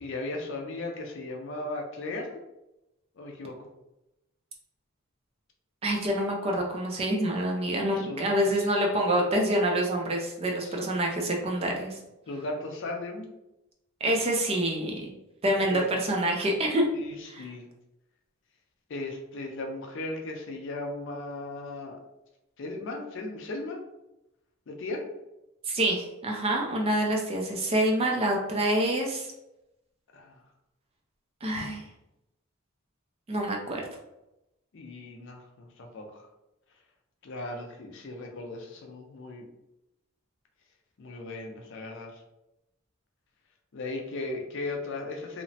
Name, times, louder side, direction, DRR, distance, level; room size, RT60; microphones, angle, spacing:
voice 1, 0.0-2.4 3.2-3.7 8.0-8.7 10.4-10.8 12.3-13.3 15.7-15.9 16.9-17.6 18.9-22.0 22.6-23.8 24.7-25.0 30.1-30.4 34.7-36.3 37.2-39.4 41.0-42.2 43.7-45.4, left 2 dB, 55° left, 2 dB, 0.5 m, -37 dB
voice 2, 5.8-12.0 14.0-15.1 15.4-16.8 17.3-17.4 25.7-29.3 31.4-31.8 33.3-33.9, right 1 dB, 25° right, 0 dB, 0.4 m, -27 dB
2.9 x 2.0 x 2.7 m, 0.91 s
head